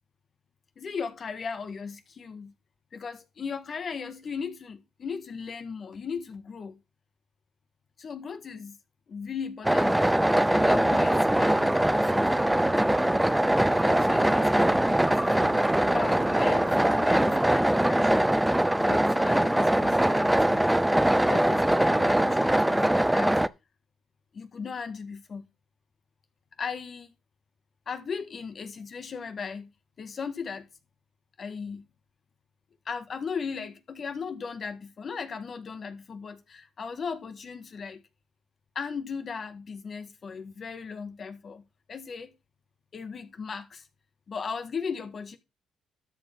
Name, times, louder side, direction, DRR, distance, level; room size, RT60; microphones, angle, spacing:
voice 1, 0.8-2.5 2.9-6.8 8.0-8.8 9.1-12.5 13.7-18.3 18.8-20.7 21.2-23.3 24.3-25.4 26.6-27.1 27.9-29.7 30.0-30.7 31.4-31.9 32.9-38.0 38.8-42.3 42.9-43.9 44.3-45.4, left 5 dB, 45° left, 1.7 m, -37 dB
sound 1, 9.6-23.5, right 1 dB, 5° right, 0.5 m, -22 dB
sound 2, 10.5-17.4, right 11 dB, 80° right, 0.9 m, -46 dB
13.0 x 7.3 x 3.6 m
cardioid pair, 90°, 0 cm